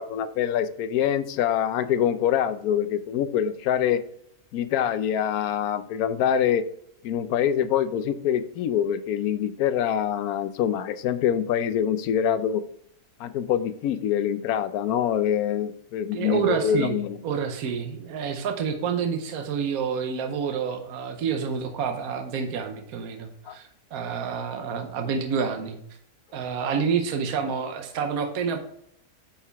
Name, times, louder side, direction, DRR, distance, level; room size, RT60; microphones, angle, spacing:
voice 1, 0.0-4.0 4.5-6.6 7.0-12.6 13.2-17.2 23.5-23.6, left 9 dB, 80° left, 12 dB, 1.0 m, -25 dB
voice 2, 16.1-17.0 17.2-25.8 26.3-28.6, right 6 dB, 75° right, 6 dB, 1.2 m, -28 dB
9.0 x 4.7 x 3.4 m, 0.70 s
omnidirectional pair, 1.6 m